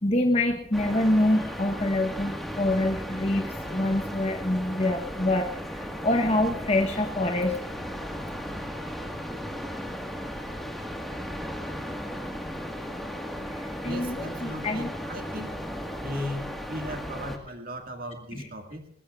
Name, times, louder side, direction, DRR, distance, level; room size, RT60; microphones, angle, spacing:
voice 1, 0.0-7.6 13.5-14.9 18.3-18.5, left 1 dB, 30° left, 4 dB, 1.1 m, -26 dB
sound 1, 0.7-17.4, equal, ahead, 1.8 m, -36 dB
voice 2, 13.8-15.6 16.0-18.9, equal, 50° right, 4 dB, 2.1 m, -37 dB
21.0 x 20.0 x 2.5 m, 0.68 s
head